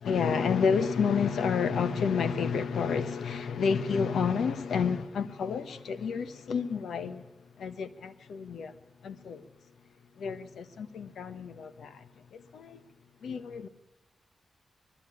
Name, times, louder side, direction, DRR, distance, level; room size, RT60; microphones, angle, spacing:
voice 1, 0.0-8.8 9.0-9.5 10.2-12.8 13.2-13.7, left 6 dB, 90° left, 1.3 m, -30 dB
20.5 x 15.0 x 9.9 m
cardioid pair, 85°, 0 cm